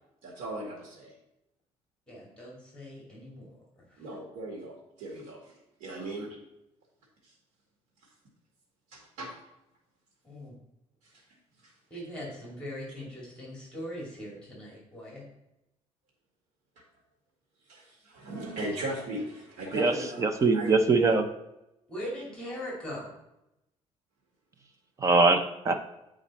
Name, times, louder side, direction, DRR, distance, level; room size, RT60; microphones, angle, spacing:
voice 1, 0.2-1.1 4.0-5.4 5.8-6.3 8.9-9.3 17.7-20.7, right 1 dB, 85° right, -1 dB, 2.0 m, -37 dB
voice 2, 2.1-3.5 3.8-4.0 10.2-10.5 11.9-15.2 21.9-23.1, equal, 10° left, -4 dB, 2.5 m, -40 dB
voice 3, 20.2-21.2 25.0-25.7, right 3 dB, 25° right, 7 dB, 0.6 m, -22 dB
8.8 x 5.1 x 4.2 m, 0.89 s
cardioid pair, 160°, 13 cm